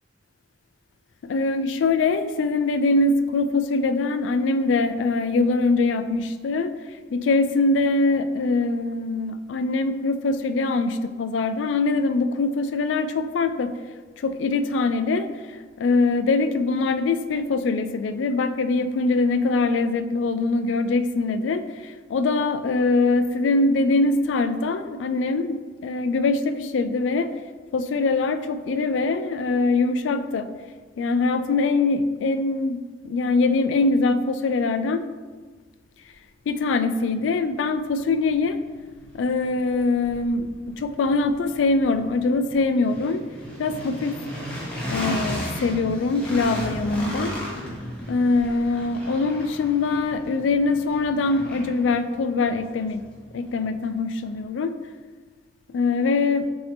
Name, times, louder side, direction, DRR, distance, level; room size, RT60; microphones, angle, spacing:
voice 1, 1.2-6.7 7.1-13.7 14.2-15.3 15.8-27.3 27.7-30.5 31.0-32.8 33.0-35.0 36.5-38.6 39.1-43.2 43.6-44.2 44.9-47.3 48.1-53.0 53.3-54.7 55.7-56.5, left 3 dB, 90° left, 10 dB, 0.3 m, -23 dB
sound 1, 37.3-37.4 37.9-53.9, equal, 5° left, 0.9 m, -36 dB
5.7 x 2.7 x 3.4 m, 1.4 s
head